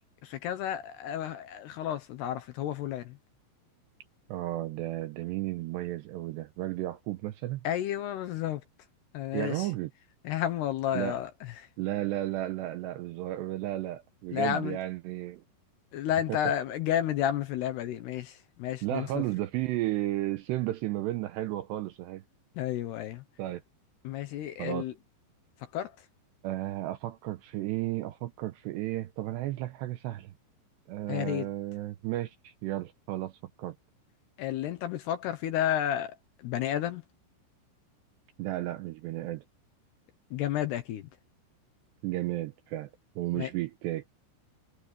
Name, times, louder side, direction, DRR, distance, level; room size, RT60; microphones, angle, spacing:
voice 1, 0.2-3.2 7.6-8.6 9.1-9.7 10.2-11.7 14.3-14.8 15.9-19.2 22.6-23.2 24.0-24.9 25.7-25.9 31.1-31.5 34.4-36.2 36.4-37.0 40.3-41.1 43.4-43.5, left 11 dB, 75° left, 2.6 m, -31 dB
voice 2, 4.3-7.7 9.3-9.9 10.9-11.2 11.8-15.4 16.3-16.4 18.8-22.2 23.4-23.6 24.6-24.9 26.4-30.3 30.9-33.8 38.4-39.4 42.0-42.9 43.2-44.0, right 15 dB, 80° right, 2.6 m, -33 dB
omnidirectional pair, 5.7 m